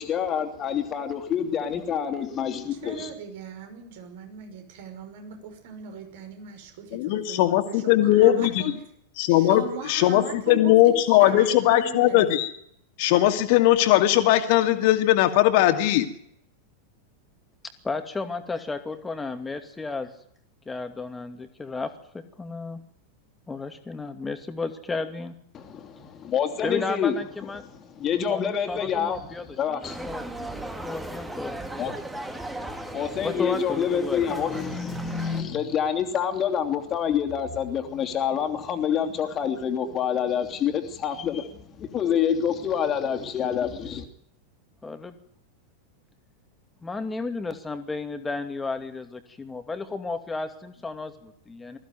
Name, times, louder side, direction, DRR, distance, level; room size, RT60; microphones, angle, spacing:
voice 1, 0.0-3.1 25.5-27.2 28.0-29.3 29.6-30.9 31.8-44.0, left 8 dB, 30° left, 6 dB, 3.0 m, -27 dB
voice 2, 2.7-8.7 9.3-12.3, right 7 dB, 55° right, 6 dB, 5.8 m, -39 dB
voice 3, 6.9-8.6 9.2-9.6 9.9-12.5 13.0-16.1, left 14 dB, 50° left, 8 dB, 2.4 m, -19 dB
voice 4, 17.8-20.1 20.7-22.8 23.5-25.3 26.6-27.7 28.3-30.3 30.7-31.6 33.2-34.3 44.8-45.2 46.8-51.8, left 3 dB, 10° left, 8 dB, 2.6 m, -33 dB
sound 1, 29.8-35.4, right 2 dB, 5° right, 2.5 m, -37 dB
21.0 x 15.5 x 9.5 m, 0.70 s
figure-of-eight pair, 90°, 0 cm